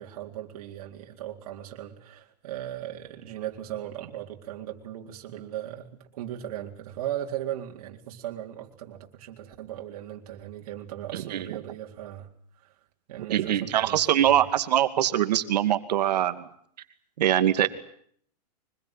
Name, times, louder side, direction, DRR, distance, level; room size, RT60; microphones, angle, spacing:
voice 1, 0.0-12.3 12.6-12.7 13.1-14.5, right 12 dB, 60° right, 1 dB, 3.9 m, -38 dB
voice 2, 11.1-11.5 13.3-16.5 17.2-17.7, right 11 dB, 75° right, 10 dB, 2.4 m, -23 dB
24.5 x 21.5 x 9.1 m, 0.63 s
supercardioid pair, 160°, 21 cm